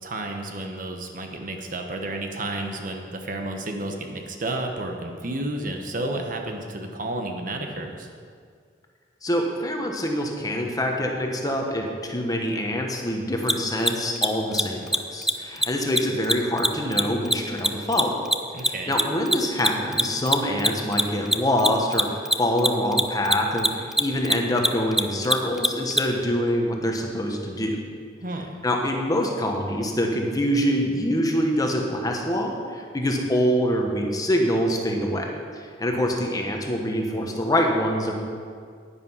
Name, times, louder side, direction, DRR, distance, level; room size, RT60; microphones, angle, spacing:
voice 1, 0.0-8.1 18.5-18.9 28.2-28.6, right 2 dB, 45° right, 3 dB, 1.1 m, -31 dB
voice 2, 9.2-18.1 18.6-27.8 28.6-35.3 35.6-38.1, equal, 20° left, 1 dB, 1.2 m, -25 dB
Mechanisms, 13.4-13.5 13.8-13.9 14.2-14.3 14.5-14.6 14.9-15.0 15.2-15.3 15.6-15.7 16.0-18.7 18.9-26.0, right 1 dB, 5° right, 0.4 m, -20 dB
10.5 x 10.0 x 5.7 m, 2.1 s
head